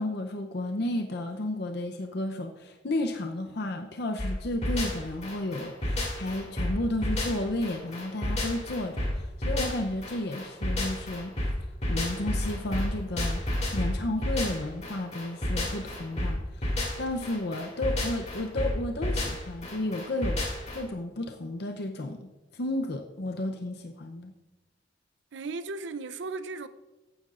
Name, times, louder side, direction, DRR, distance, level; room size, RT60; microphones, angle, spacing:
voice 1, 0.0-11.3 11.9-20.4 20.7-24.3, left 1 dB, 60° left, 0.6 m, -32 dB
sound 1, 4.2-20.8, left 1 dB, 35° left, 2.5 m, -31 dB
voice 2, 25.3-26.7, right 3 dB, 70° right, 0.5 m, -36 dB
14.0 x 9.4 x 2.5 m
head